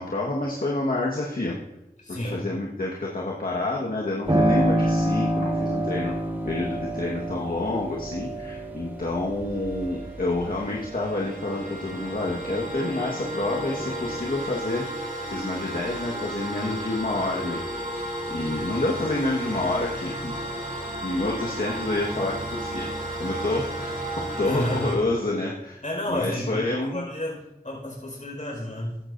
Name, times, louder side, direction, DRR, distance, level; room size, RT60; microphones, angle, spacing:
voice 1, 0.0-1.6 2.1-6.1 6.4-17.6 17.9-20.4 21.0-25.8 26.1-27.0, left 2 dB, 70° left, -3 dB, 1.5 m, -28 dB
voice 2, 2.0-2.5 16.6-16.8 24.4-24.9 25.8-29.0, left 1 dB, 50° left, -2 dB, 4.9 m, -31 dB
sound 1, 4.2-10.9, equal, 10° right, 1.9 m, -46 dB
Piano, 4.3-12.7 13.1-14.2, right 1 dB, 40° right, 4.5 m, -28 dB
sound 2, 9.7-25.0, right 1 dB, 60° right, 3.2 m, -33 dB
15.5 x 12.0 x 2.6 m, 0.87 s
wide cardioid pair, 40°, 16 cm